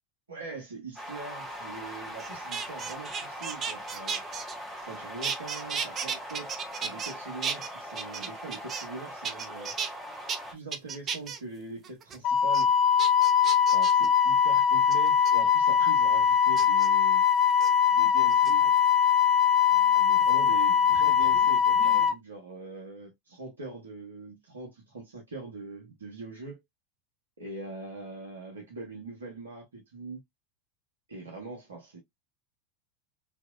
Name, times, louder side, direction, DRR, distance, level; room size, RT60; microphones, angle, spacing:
voice 1, 0.3-4.3 4.8-9.8 10.5-12.7 13.7-17.2 17.9-18.6 19.9-26.6 27.4-30.2 31.1-32.0, right 3 dB, 80° right, 1.0 m, -42 dB
sound 1, 1.0-10.5, equal, 5° right, 1.2 m, -41 dB
sound 2, 2.2-4.9 5.2-7.1 7.4-9.0 9.2-9.9 10.3-10.4 10.7-11.4 11.8-12.2 12.5-12.6 13.0-14.1 14.9-15.3 16.6-16.9 17.5-17.7 18.3-18.9 20.3-21.5 21.7-22.1, right 6 dB, 35° right, 0.5 m, -35 dB
Wind instrument woodwind instrument, 12.2-22.1, left 8 dB, 45° left, 0.4 m, -22 dB
2.9 x 2.6 x 2.3 m
figure-of-eight pair, 85°, 0 cm